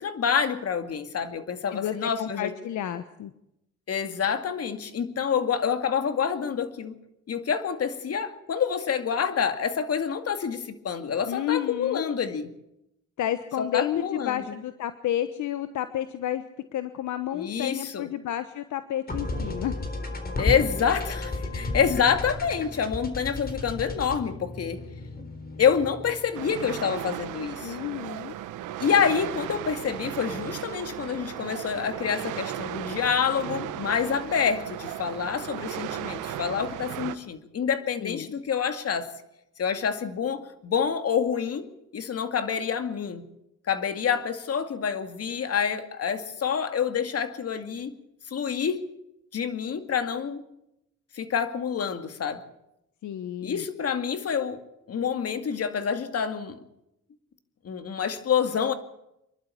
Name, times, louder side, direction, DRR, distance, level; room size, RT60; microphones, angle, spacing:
voice 1, 0.0-2.5 3.9-7.0 7.3-12.5 13.6-14.4 17.3-18.1 20.4-24.8 25.6-27.8 28.8-39.1 39.6-41.7 41.9-43.2 43.7-47.9 48.3-48.8 49.3-50.4 51.1-52.4 53.4-54.6 54.9-56.6 57.6-58.7, left 7 dB, 55° left, 9 dB, 2.3 m, -27 dB
voice 2, 1.7-3.3 11.3-12.1 13.2-16.4 16.7-19.7 27.6-28.4 38.0-38.3 53.0-53.6, left 11 dB, 75° left, 11 dB, 1.1 m, -31 dB
sound 1, 19.1-26.4, left 2 dB, 30° left, 4.0 m, -33 dB
sound 2, 26.3-37.2, right 12 dB, 90° right, 1.2 m, -36 dB
26.5 x 12.0 x 8.6 m, 0.83 s
cardioid pair, 90°, 30 cm